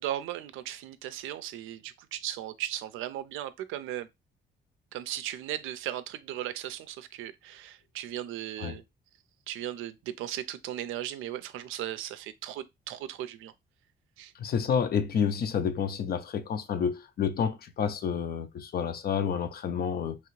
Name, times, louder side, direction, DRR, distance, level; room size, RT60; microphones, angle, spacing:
voice 1, 0.0-4.1 4.9-8.8 9.5-13.5 14.2-14.3, right 12 dB, 90° right, 0.4 m, -37 dB
voice 2, 14.4-20.2, left 7 dB, 50° left, 0.5 m, -29 dB
3.0 x 2.4 x 3.0 m
cardioid pair, 90°, 20 cm